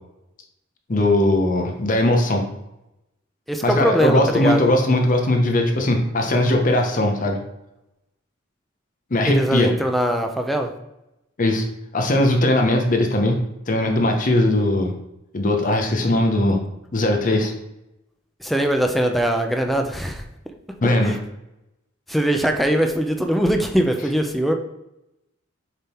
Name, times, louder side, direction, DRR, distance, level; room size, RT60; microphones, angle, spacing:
voice 1, 0.9-2.4 3.6-7.4 9.1-9.7 11.4-11.6 11.9-13.4 13.7-14.9 15.3-16.6 16.9-17.5 20.8-21.2, left 1 dB, 45° left, 3 dB, 0.8 m, -19 dB
voice 2, 3.5-4.7 9.3-10.7 18.4-20.2 21.0-21.2 22.1-24.5, equal, ahead, 4 dB, 0.6 m, -21 dB
6.9 x 3.7 x 4.3 m, 0.88 s
head